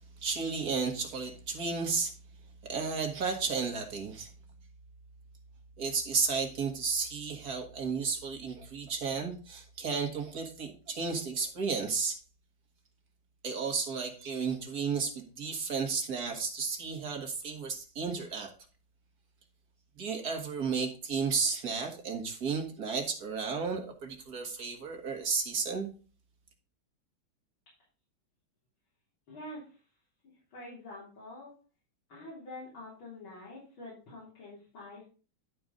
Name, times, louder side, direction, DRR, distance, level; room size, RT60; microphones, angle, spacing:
voice 1, 0.2-2.1 2.6-4.3 5.8-12.2 13.4-18.5 20.0-25.9, right 5 dB, 50° right, 4 dB, 2.2 m, -33 dB
voice 2, 29.3-29.8 30.2-31.5 32.1-35.0, left 1 dB, 80° left, -7 dB, 4.5 m, -46 dB
11.5 x 4.6 x 5.3 m, 0.37 s
omnidirectional pair, 2.2 m